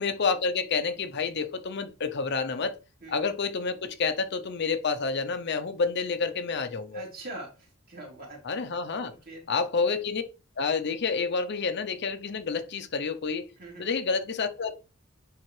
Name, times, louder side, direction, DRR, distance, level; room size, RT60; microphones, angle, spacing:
voice 1, 0.0-2.8 3.1-7.0 8.4-9.1 9.5-10.2 10.6-13.5 13.8-14.8, left 4 dB, 55° left, 0.6 m, -29 dB
voice 2, 6.9-8.4 9.1-9.4 13.6-13.8, right 1 dB, 45° right, 3.1 m, -42 dB
10.5 x 3.6 x 3.2 m
head